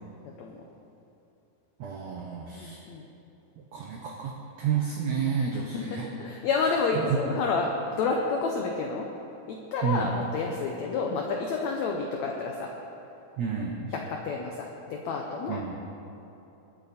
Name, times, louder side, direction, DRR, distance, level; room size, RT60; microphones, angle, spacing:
voice 1, 0.2-0.6 2.5-3.0 5.7-9.1 9.5-12.7 13.9-15.8, left 4 dB, 75° left, 1 dB, 1.6 m, -30 dB
voice 2, 1.8-2.8 3.7-6.1 6.9-7.2 9.8-10.2 13.4-13.9 15.5-15.8, right 7 dB, 75° right, 0 dB, 1.6 m, -30 dB
22.0 x 8.0 x 4.3 m, 2.9 s
omnidirectional pair, 4.3 m